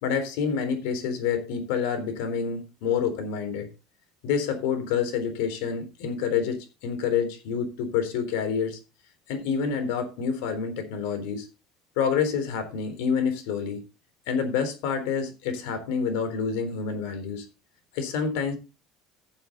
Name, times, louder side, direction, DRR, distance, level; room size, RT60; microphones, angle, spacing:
voice 1, 0.0-3.7 4.2-8.8 9.3-11.5 12.0-13.8 14.3-17.5 17.9-18.5, left 6 dB, 85° left, 8 dB, 3.8 m, -28 dB
15.0 x 7.2 x 3.9 m, 0.29 s
cardioid pair, 150°, 0 cm